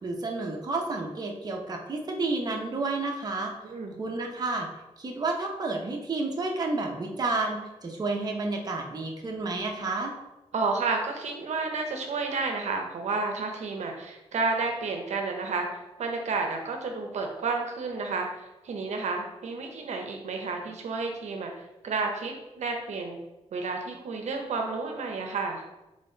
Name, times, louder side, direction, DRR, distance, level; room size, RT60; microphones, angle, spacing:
voice 1, 0.0-3.5 4.0-4.7 5.0-10.1, right 3 dB, 35° right, 1 dB, 0.7 m, -30 dB
voice 2, 3.6-4.0 10.5-21.5 21.8-23.2 23.5-25.6, right 4 dB, 75° right, 2 dB, 0.7 m, -31 dB
4.1 x 3.3 x 3.8 m, 1.0 s
wide cardioid pair, 120°, 12 cm